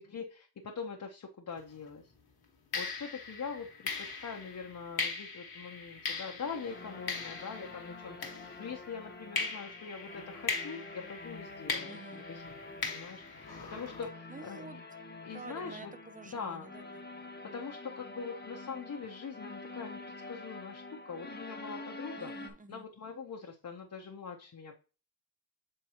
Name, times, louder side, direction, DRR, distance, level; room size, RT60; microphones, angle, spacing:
voice 1, 0.0-2.0 2.7-14.8 15.2-15.9 16.2-16.7 17.4-20.0 20.3-22.3 22.7-24.8, left 5 dB, 55° left, 1 dB, 0.8 m, -43 dB
sound 1, 1.6-1.8 2.7-8.9 9.4-14.1, left 4 dB, 90° left, 1.3 m, -40 dB
sound 2, 6.4-22.5, left 2 dB, 30° left, 0.9 m, -47 dB
voice 2, 11.9-12.3 14.3-14.8 15.3-17.0 22.2-22.8, right 3 dB, 20° right, 10 dB, 0.5 m, -49 dB
7.6 x 4.5 x 2.9 m, 0.35 s
wide cardioid pair, 125°, 36 cm